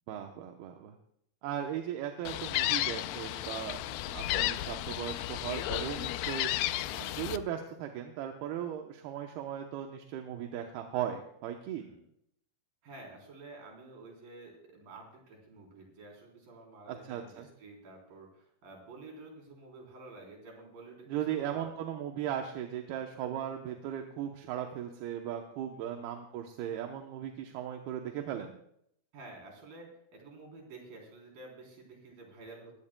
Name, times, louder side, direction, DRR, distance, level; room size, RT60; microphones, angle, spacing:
voice 1, 0.1-1.0 1.4-6.5 6.9-11.9 16.9-17.5 21.1-28.6, right 10 dB, 85° right, 3 dB, 2.9 m, -37 dB
Gull seagull, 2.3-7.4, left 14 dB, 80° left, 2.1 m, -33 dB
voice 2, 7.0-7.3 11.8-12.0 12.8-21.7 25.7-26.0 29.1-32.8, right 2 dB, 65° right, 0 dB, 5.5 m, -51 dB
22.0 x 16.5 x 2.3 m, 0.72 s
omnidirectional pair, 4.4 m